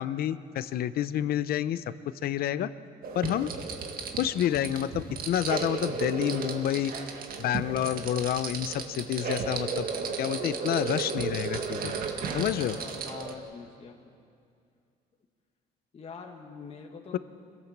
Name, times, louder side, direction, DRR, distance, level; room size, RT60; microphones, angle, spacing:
voice 1, 0.0-1.8 2.2-2.7 3.1-3.5 4.2-6.9 7.4-9.9 10.2-12.0 12.3-12.8 17.1-17.2, left 11 dB, 65° left, 14 dB, 0.8 m, -29 dB
sound 1, 3.0-13.3, right 5 dB, 60° right, 1.9 m, -34 dB
voice 2, 12.3-14.1 15.9-17.2, left 5 dB, 35° left, 1 dB, 1.6 m, -44 dB
25.5 x 17.0 x 7.4 m, 2.4 s
cardioid pair, 110°, 17 cm